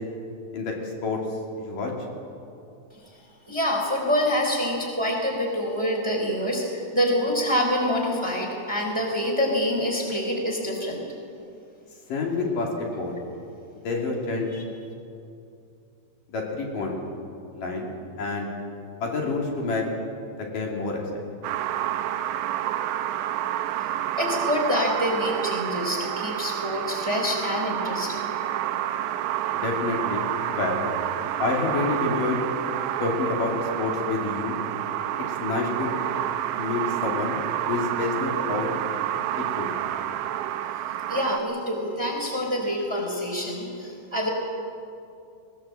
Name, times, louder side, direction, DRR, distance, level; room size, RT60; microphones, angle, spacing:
voice 1, 0.5-1.2 1.6-1.9 12.1-13.2 13.8-14.5 16.3-17.0 17.5-17.9 18.2-18.5 19.0-19.8 20.4-21.2 29.5-30.8 31.4-32.4 33.0-34.6 35.4-36.0 36.6-37.4 37.7-38.7 39.6-39.7, left 3 dB, 65° left, -1 dB, 4.4 m, -28 dB
voice 2, 3.5-11.1 14.5-14.6 24.2-28.3 41.1-44.3, equal, 5° right, 1 dB, 3.4 m, -26 dB
sound 1, 21.4-41.4, right 12 dB, 75° right, 1.9 m, -29 dB
21.0 x 20.5 x 7.7 m, 2.5 s
omnidirectional pair, 4.2 m